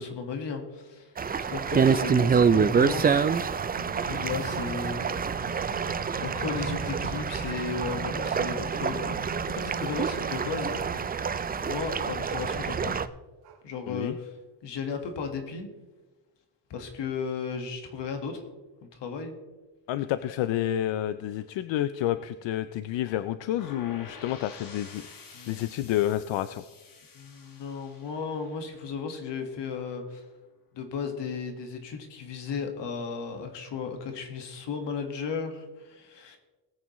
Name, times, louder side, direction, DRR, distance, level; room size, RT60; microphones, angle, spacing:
voice 1, 0.0-3.3 4.0-5.0 6.2-9.2 9.5-10.8 11.6-13.0 13.6-14.3 14.6-15.7 16.7-18.5 18.8-19.3 25.3-25.8 27.2-30.3 30.7-36.4, left 5 dB, 70° left, 5 dB, 1.7 m, -35 dB
sound 1, 1.2-13.1, right 6 dB, 20° right, 0.4 m, -27 dB
sound 2, 3.6-12.0 13.4-13.6 14.1-14.2 14.8-14.9, right 2 dB, 70° right, 2.7 m, -42 dB
voice 2, 19.9-25.0 25.5-26.6, left 12 dB, 90° left, 13 dB, 0.6 m, -29 dB
sound 3, 23.6-29.4, left 4 dB, 50° left, 1.9 m, -49 dB
19.0 x 8.5 x 3.1 m, 1.2 s
cardioid pair, 115°, 43 cm